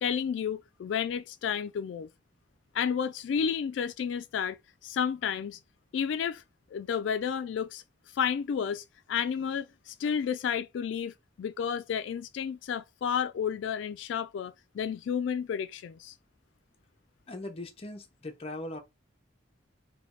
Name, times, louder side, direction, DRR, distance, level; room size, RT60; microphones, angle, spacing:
voice 1, 0.0-2.1 2.7-4.6 4.8-5.6 5.9-6.4 6.7-7.8 8.1-16.1, left 7 dB, 80° left, 0.3 m, -31 dB
voice 2, 17.3-18.8, left 1 dB, 35° left, 0.6 m, -39 dB
3.2 x 2.3 x 4.2 m
head